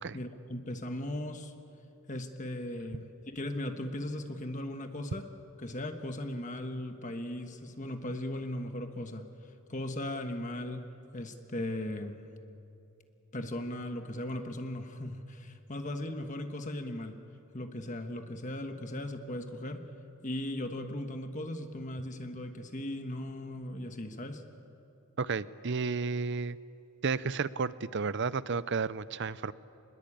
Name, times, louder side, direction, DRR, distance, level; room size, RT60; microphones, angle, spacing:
voice 1, 0.1-1.5 2.1-5.2 5.6-9.3 9.7-10.9 11.1-12.3 13.3-17.2 17.5-19.9 20.2-24.4, left 1 dB, 35° left, 6 dB, 1.4 m, -37 dB
voice 2, 25.2-26.6 27.0-29.5, right 4 dB, 55° right, 16 dB, 0.6 m, -32 dB
27.0 x 21.0 x 8.7 m, 2.9 s
head